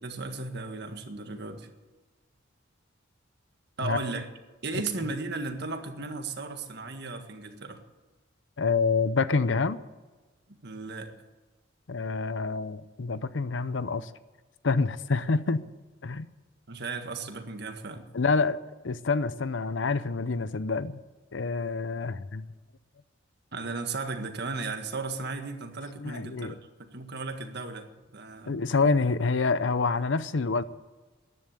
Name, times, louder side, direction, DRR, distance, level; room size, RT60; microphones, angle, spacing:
voice 1, 0.0-1.7 3.8-4.3 4.6-7.8 10.5-11.1 16.7-18.1 23.5-28.6, right 3 dB, 60° right, 1.7 m, -36 dB
voice 2, 8.6-9.8 11.9-14.1 14.6-15.6 16.0-16.3 18.1-18.6 18.8-21.0 21.3-22.5 26.0-26.5 28.5-30.6, left 4 dB, 70° left, 0.7 m, -27 dB
14.0 x 11.0 x 8.6 m
head